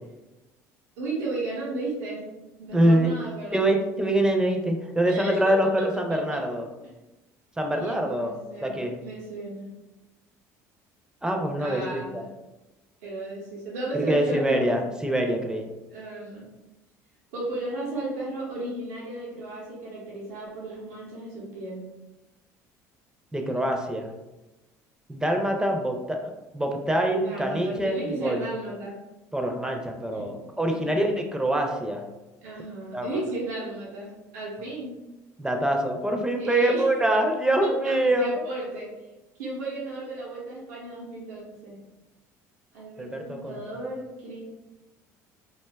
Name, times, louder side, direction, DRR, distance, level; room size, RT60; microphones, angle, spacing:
voice 1, 1.0-2.2 2.6-3.6 5.1-5.8 6.1-6.2 7.7-9.7 11.6-12.3 13.0-14.8 15.9-16.5 17.3-21.8 27.2-28.9 30.1-30.3 30.7-31.2 32.4-34.9 36.4-36.9 37.6-38.9 39.4-41.8 42.7-44.5, right 2 dB, 90° right, -5 dB, 0.7 m, -34 dB
voice 2, 2.7-3.1 3.5-6.7 7.6-8.3 8.6-9.0 11.2-12.2 13.9-15.6 23.3-24.1 25.1-28.4 29.3-32.0 32.9-33.1 35.4-38.4 43.0-43.6, right 1 dB, 10° right, 2 dB, 0.4 m, -25 dB
2.5 x 2.2 x 2.2 m, 1.0 s
supercardioid pair, 75°, 8 cm